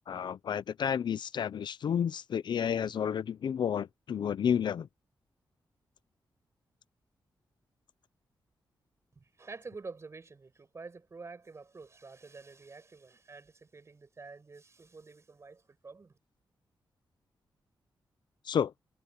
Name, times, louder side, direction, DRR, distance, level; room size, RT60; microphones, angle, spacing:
voice 1, 0.1-4.9 18.5-18.7, left 8 dB, 70° left, 0.7 m, -31 dB
voice 2, 9.2-16.2, right 4 dB, 35° right, 6.9 m, -48 dB
wide cardioid pair, 110°, 8 cm